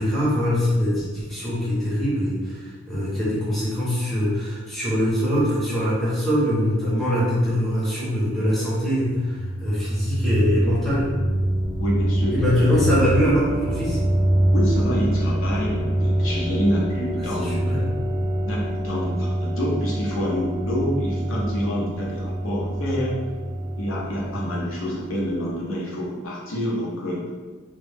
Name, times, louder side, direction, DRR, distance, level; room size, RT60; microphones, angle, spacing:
voice 1, 0.0-11.1 12.3-14.0 17.3-17.8, equal, ahead, -9 dB, 0.7 m, -23 dB
sound 1, 9.0-25.7, right 1 dB, 35° right, 0.4 m, -25 dB
voice 2, 11.8-12.4 14.5-17.7 18.5-23.2 23.8-27.2, equal, 65° left, -5 dB, 0.6 m, -27 dB
2.2 x 2.0 x 3.2 m, 1.4 s
head